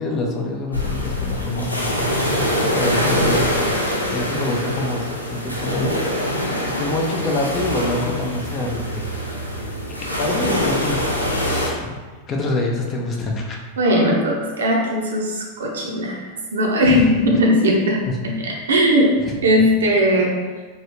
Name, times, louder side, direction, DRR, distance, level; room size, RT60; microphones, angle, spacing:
voice 1, 0.0-1.9 2.7-5.9 6.6-9.1 10.2-12.0 12.3-13.6 16.8-17.0 18.0-18.1, left 2 dB, 30° left, 0 dB, 0.5 m, -25 dB
sound 1, 0.7-11.7, equal, 85° left, 0.5 m, -24 dB
voice 2, 13.8-16.2 16.5-19.1 19.4-20.4, equal, 65° right, -1 dB, 0.6 m, -18 dB
3.1 x 2.7 x 2.9 m, 1.4 s
figure-of-eight pair, 90°, 0 cm